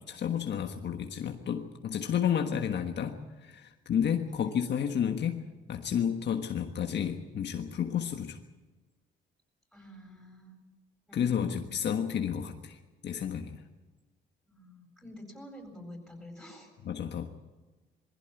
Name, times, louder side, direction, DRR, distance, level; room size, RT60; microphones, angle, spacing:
voice 1, 0.1-8.4 11.1-12.8 13.0-13.6 16.8-17.3, left 8 dB, 60° left, 4 dB, 1.5 m, -31 dB
voice 2, 4.3-4.6 9.7-10.6 11.1-11.7 14.5-16.7, left 1 dB, ahead, 2 dB, 7.9 m, -48 dB
21.5 x 16.0 x 9.1 m, 1.2 s
cardioid pair, 90°, 20 cm